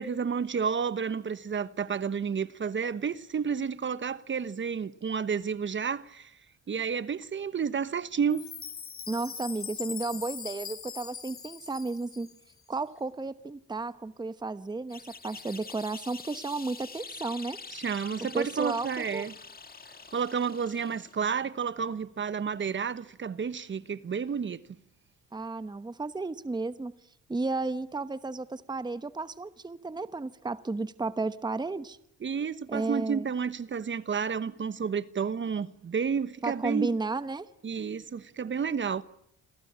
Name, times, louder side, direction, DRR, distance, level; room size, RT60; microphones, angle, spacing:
voice 1, 0.0-6.3 6.7-8.5 17.7-19.3 20.1-24.6 32.2-36.9 37.6-39.0, right 6 dB, 40° right, 1.2 m, -31 dB
Chime, 8.3-12.5, left 7 dB, 45° left, 2.2 m, -41 dB
voice 2, 9.1-12.3 12.7-17.6 18.3-19.3 25.3-26.9 27.3-32.0 32.7-33.3 36.4-37.5, right 3 dB, 15° right, 1.0 m, -33 dB
sound 1, 14.9-21.3, left 5 dB, 30° left, 1.9 m, -46 dB
28.0 x 22.5 x 8.8 m
cardioid pair, 90°, 30 cm